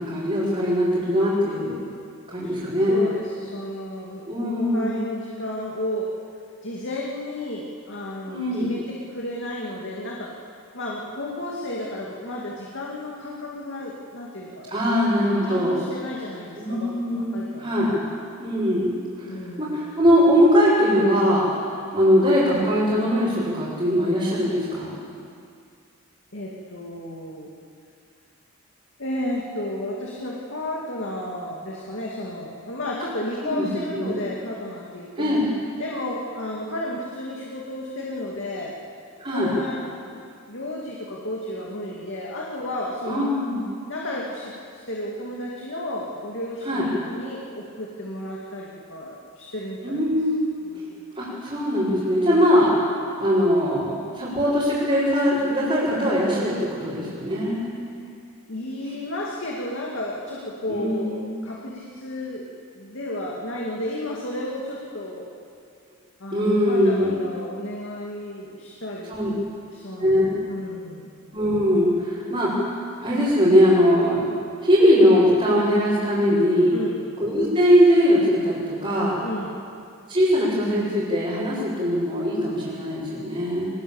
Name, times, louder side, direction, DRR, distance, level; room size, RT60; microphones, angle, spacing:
voice 1, 0.0-1.8 2.3-3.1 4.3-5.0 8.3-8.7 14.7-15.8 16.6-17.9 18.4-24.9 33.4-34.2 35.2-35.4 39.2-39.5 43.1-43.6 46.6-46.8 49.8-50.4 50.7-50.8 51.2-52.7 53.2-57.7 60.7-61.3 66.3-67.1 69.1-69.3 70.0-70.3 71.3-72.7 73.0-74.3 74.6-76.8 77.2-79.2 80.1-83.7, equal, 30° right, -10 dB, 5.6 m, -21 dB
voice 2, 2.9-6.1 6.6-10.3 10.7-14.8 15.4-18.2 19.2-19.8 26.3-27.5 29.0-35.4 35.8-38.7 39.3-40.0 40.5-43.3 43.9-50.0 50.6-50.9 58.5-62.5 62.7-65.3 66.2-71.2 76.7-77.0 79.2-79.6, left 1 dB, 55° left, -3 dB, 2.5 m, -33 dB
24.0 x 20.0 x 7.3 m, 2.3 s
head